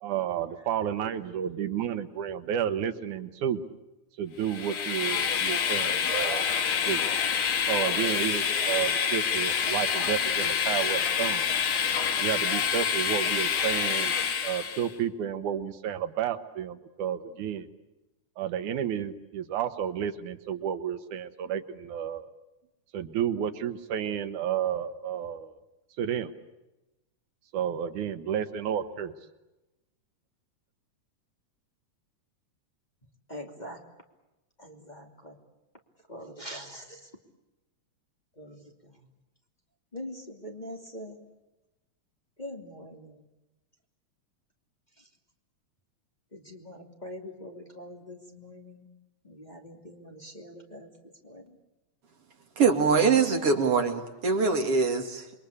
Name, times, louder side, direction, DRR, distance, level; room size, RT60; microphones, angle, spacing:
voice 1, 0.0-3.6 4.2-6.5 6.9-7.0 7.7-11.4 12.2-14.2 14.4-17.7 18.4-22.3 22.9-25.6 26.0-26.3 27.5-29.1, right 9 dB, 90° right, 11 dB, 2.7 m, -31 dB
Train, 4.4-14.9, left 7 dB, 80° left, 3.3 m, -27 dB
voice 2, 33.3-33.8 34.6-35.4 36.1-37.0 38.4-38.6 39.9-41.2 42.4-43.1 46.3-48.9 49.2-50.9 51.2-51.4, equal, 15° left, 1 dB, 2.7 m, -43 dB
voice 3, 52.6-55.4, right 5 dB, 50° right, 5 dB, 3.1 m, -23 dB
28.5 x 23.0 x 8.5 m, 1.0 s
omnidirectional pair, 3.4 m